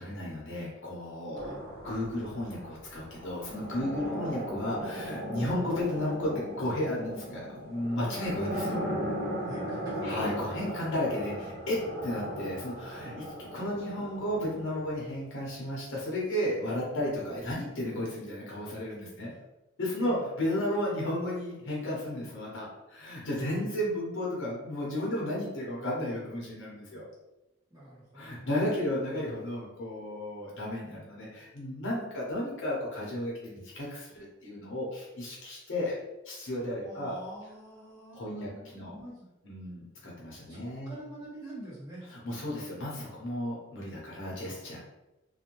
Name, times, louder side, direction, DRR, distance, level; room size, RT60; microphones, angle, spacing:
voice 1, 0.0-8.8 10.0-19.3 19.8-27.0 28.1-36.0 36.2-37.2 38.1-38.9 39.4-41.0 42.1-44.8, left 1 dB, 65° left, -4 dB, 0.7 m, -33 dB
sound 1, 1.3-15.2, equal, 45° right, 0.6 m, -37 dB
voice 2, 9.4-10.1 20.0-20.2 23.3-23.7 27.7-29.4 36.8-39.3 40.5-42.0, right 1 dB, 20° right, -9 dB, 1.1 m, -46 dB
2.5 x 2.1 x 3.0 m, 0.96 s
head